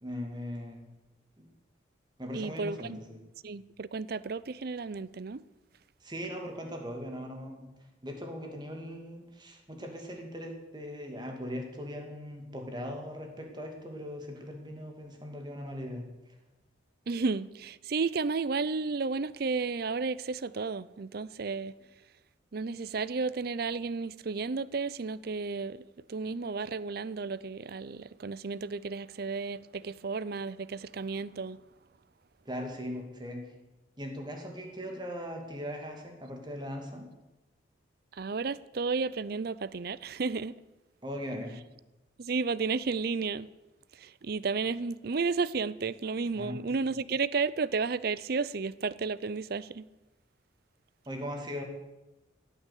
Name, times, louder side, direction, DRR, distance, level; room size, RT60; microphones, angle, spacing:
voice 1, 0.0-0.9 1.4-1.5 2.2-3.2 6.0-7.7 8.0-16.0 32.5-33.5 34.0-37.1 41.0-41.6 46.3-46.6 51.1-51.6, equal, 25° right, 2.6 m, -39 dB
voice 2, 2.3-3.0 3.4-5.4 17.1-21.7 22.5-25.8 26.1-31.6 38.1-40.6 42.2-43.5 43.9-49.9, right 4 dB, 50° right, 0.5 m, -32 dB
16.0 x 9.3 x 8.3 m
head